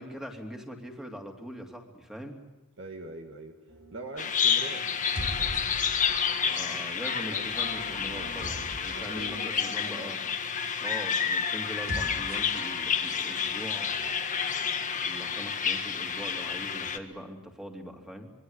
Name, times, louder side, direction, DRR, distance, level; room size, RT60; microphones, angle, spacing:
voice 1, 0.0-2.4 6.5-10.2 10.8-14.1 14.9-18.3, equal, ahead, 2 dB, 2.8 m, -42 dB
voice 2, 2.8-3.5 3.9-4.9 6.4-6.7 7.3-8.4 8.9-10.2, right 2 dB, 55° right, 3 dB, 2.0 m, -43 dB
sound 1, 3.7-4.1 4.9-6.3 7.0-9.3 11.7-12.6, equal, 80° right, 6.2 m, -41 dB
Bird vocalization bird call bird song, 4.2-17.0, left 7 dB, 35° left, 1.6 m, -30 dB
26.5 x 23.0 x 8.1 m, 1.1 s
head